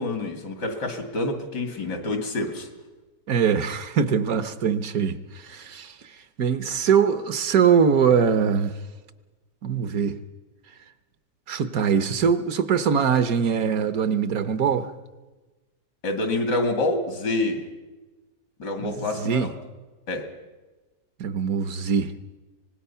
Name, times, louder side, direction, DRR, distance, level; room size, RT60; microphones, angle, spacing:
voice 1, 0.0-2.7 16.0-17.6 18.6-19.5 20.1-20.3, left 2 dB, 85° left, 2.9 m, -27 dB
voice 2, 3.3-5.9 6.4-8.8 9.6-10.2 11.5-14.9 18.8-19.5 21.2-22.1, right 7 dB, 60° right, 1.3 m, -22 dB
25.0 x 19.5 x 5.6 m
omnidirectional pair, 1.8 m